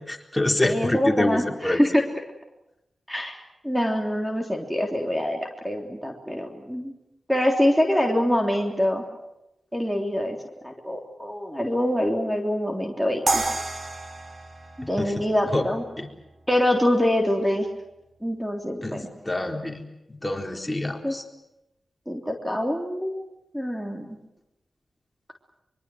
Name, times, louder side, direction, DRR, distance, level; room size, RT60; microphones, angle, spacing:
voice 1, 0.0-1.8 15.0-15.1 15.5-15.6 16.0-16.1 18.8-19.8 20.2-21.2, left 1 dB, 20° left, 3 dB, 4.1 m, -26 dB
voice 2, 0.6-2.0 3.1-6.9 7.3-9.0 9.7-10.4 10.6-13.4 14.8-15.8 16.5-17.7 18.2-19.1 21.0-21.1 22.1-23.2 23.5-24.1, left 1 dB, ahead, 3 dB, 3.4 m, -25 dB
sound 1, 13.3-16.3, right 3 dB, 55° right, 3.2 m, -30 dB
24.0 x 23.5 x 7.8 m, 0.92 s
cardioid pair, 45°, 0 cm